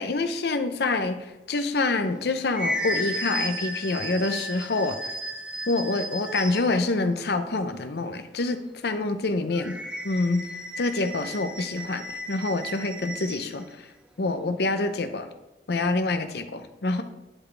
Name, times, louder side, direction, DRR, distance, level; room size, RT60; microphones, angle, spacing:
voice 1, 0.0-5.0 5.7-9.8 10.0-10.5 10.8-13.9 14.2-15.3 15.7-17.0, left 3 dB, 60° left, 9 dB, 0.6 m, -26 dB
sound 1, 2.0-6.8 9.5-13.5, equal, 5° right, 0.6 m, -34 dB
11.0 x 4.1 x 3.3 m, 1.0 s
head